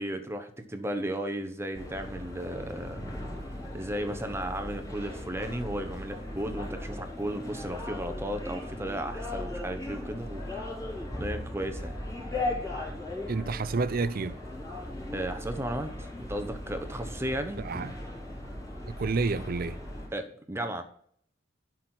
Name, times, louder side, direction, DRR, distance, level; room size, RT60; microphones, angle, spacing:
voice 1, 0.0-3.2 3.7-10.4 11.2-12.0 15.1-17.6 20.1-20.8, right 1 dB, 10° right, 1.0 m, -35 dB
sound 1, 1.7-20.1, left 1 dB, 15° left, 3.6 m, -38 dB
voice 2, 13.3-14.4 17.6-17.9 18.9-19.8, right 4 dB, 45° right, 0.5 m, -29 dB
12.0 x 6.2 x 4.4 m
head